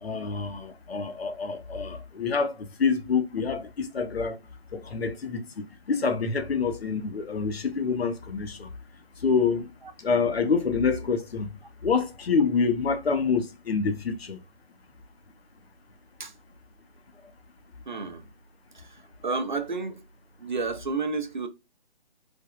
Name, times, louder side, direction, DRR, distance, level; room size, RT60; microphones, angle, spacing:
voice 1, 0.0-4.4 4.7-5.4 5.9-8.7 9.2-9.7 10.0-11.5 11.8-14.4, left 5 dB, 75° left, 0.7 m, -26 dB
voice 2, 17.9-18.2 18.7-20.0 20.4-21.5, right 4 dB, 50° right, 0.4 m, -31 dB
3.3 x 2.2 x 2.3 m
hypercardioid pair, 170°, 31 cm